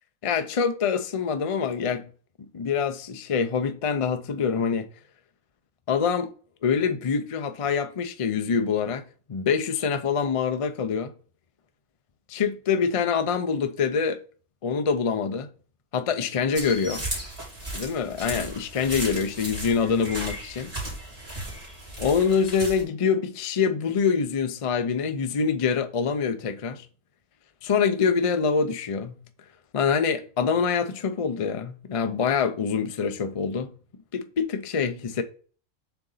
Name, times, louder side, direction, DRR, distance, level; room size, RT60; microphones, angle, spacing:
voice 1, 0.2-2.0 2.5-4.9 5.9-6.3 6.6-9.0 9.3-11.1 12.3-14.2 14.6-15.5 15.9-17.1 17.7-20.7 22.0-26.9 27.6-29.2 29.7-33.7 34.1-35.2, left 6 dB, 55° left, 0.3 m, -25 dB
sound 1, 16.5-22.8, right 1 dB, 25° right, 2.6 m, -35 dB
6.9 x 3.9 x 4.0 m
omnidirectional pair, 1.5 m